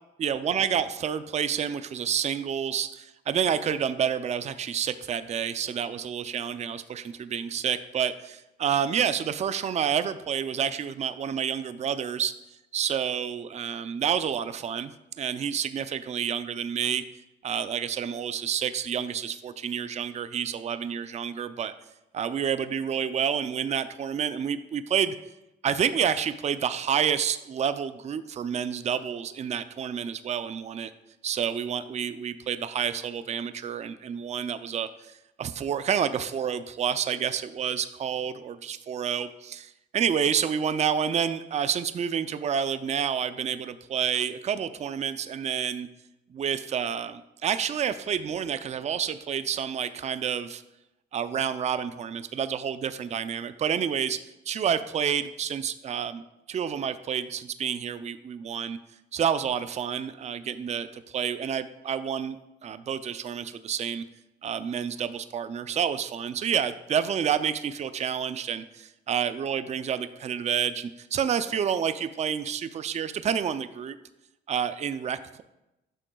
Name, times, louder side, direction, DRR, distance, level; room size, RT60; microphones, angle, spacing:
voice 1, 0.2-12.3 12.7-14.9 15.2-17.0 17.4-21.7 22.1-25.2 25.6-30.9 31.2-35.1 35.4-45.9 46.3-50.6 51.1-54.2 54.5-56.2 56.5-58.8 59.1-62.4 62.6-64.0 64.4-74.0 74.5-75.4, right 8 dB, 35° right, 12 dB, 0.4 m, -29 dB
9.9 x 6.1 x 2.3 m, 0.91 s
cardioid pair, 90°, 20 cm